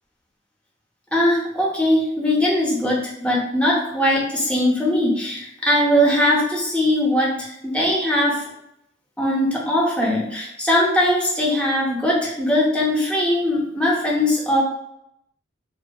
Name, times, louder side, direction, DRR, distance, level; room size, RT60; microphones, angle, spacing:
voice 1, 1.1-8.4 9.2-14.6, left 1 dB, 5° left, -3 dB, 0.5 m, -20 dB
2.2 x 2.1 x 2.6 m, 0.79 s
head